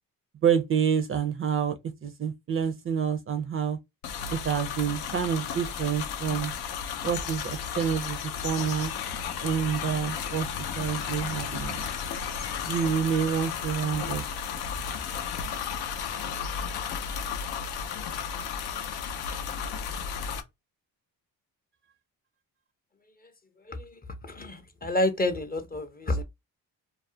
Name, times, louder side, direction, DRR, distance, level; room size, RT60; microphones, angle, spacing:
voice 1, 0.4-3.8 4.3-6.5 7.0-8.9 9.4-10.5 10.8-11.8 12.7-14.2, right 7 dB, 35° right, 0.4 m, -28 dB
sound 1, 4.0-20.4, left 7 dB, 90° left, 0.5 m, -33 dB
voice 2, 24.2-26.2, left 1 dB, 25° left, 0.5 m, -29 dB
2.3 x 2.0 x 2.6 m
cardioid pair, 80°, 37 cm